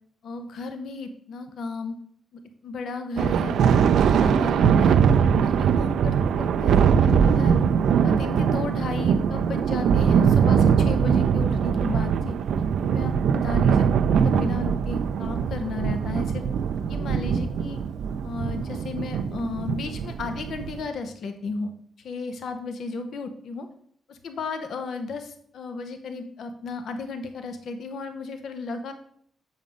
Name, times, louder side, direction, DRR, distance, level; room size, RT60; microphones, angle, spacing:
voice 1, 0.2-1.9 2.6-3.6 4.0-5.0 5.3-7.6 8.0-12.3 12.8-16.4 16.9-17.8 18.2-21.7 22.0-23.7 24.1-28.9, left 3 dB, 75° left, 7 dB, 0.8 m, -34 dB
Thunder, 3.2-20.9, right 7 dB, 80° right, 0.4 m, -21 dB
7.2 x 5.2 x 5.2 m, 0.63 s
cardioid pair, 75°, 0 cm